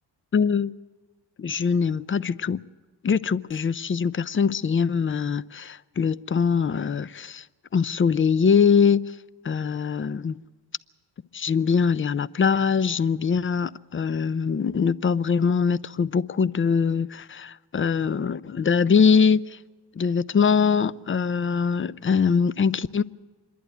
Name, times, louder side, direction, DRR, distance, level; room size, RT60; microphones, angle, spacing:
voice 1, 0.3-0.7 1.4-2.6 3.0-7.4 7.7-9.0 9.4-10.4 11.3-19.6 20.0-23.0, left 6 dB, 25° left, 0.6 m, -22 dB
26.0 x 11.0 x 9.3 m
supercardioid pair, 60°, 46 cm